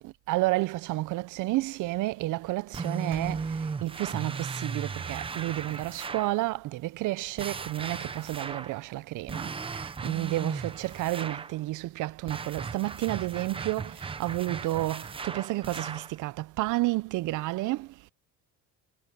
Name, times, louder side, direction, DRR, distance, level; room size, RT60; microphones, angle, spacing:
voice 1, 0.0-18.1, right 18 dB, 65° right, 0.6 m, -31 dB
sound 1, 2.7-6.4 7.4-8.8 9.3-11.6 12.3-16.1, right 5 dB, 15° right, 0.7 m, -36 dB
Percussion, 3.1-7.9, right 10 dB, 35° right, 1.0 m, -52 dB
cardioid pair, 150°, 33 cm